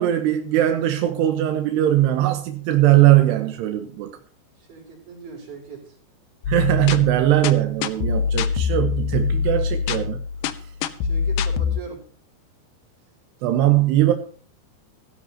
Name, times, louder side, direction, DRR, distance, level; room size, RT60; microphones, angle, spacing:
voice 1, 0.0-4.1 6.5-10.2 13.4-14.1, right 13 dB, 85° right, 6 dB, 3.2 m, -20 dB
voice 2, 4.6-6.0 11.0-12.0, right 5 dB, 45° right, 0 dB, 6.3 m, -39 dB
sound 1, 6.4-11.8, left 6 dB, 70° left, 2.3 m, -24 dB
16.5 x 13.5 x 2.9 m, 0.43 s
omnidirectional pair, 4.8 m